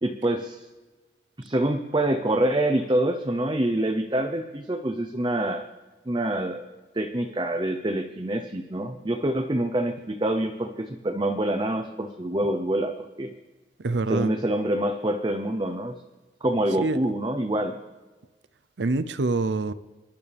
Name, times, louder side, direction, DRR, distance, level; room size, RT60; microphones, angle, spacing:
voice 1, 0.0-0.7 1.4-5.7 6.1-6.6 6.9-13.3 14.1-15.9 16.4-17.7, right 1 dB, 25° right, 5 dB, 0.7 m, -26 dB
voice 2, 13.8-14.3 16.8-17.0 18.8-19.7, right 3 dB, 75° right, 14 dB, 0.6 m, -25 dB
27.5 x 11.5 x 3.4 m, 1.2 s
head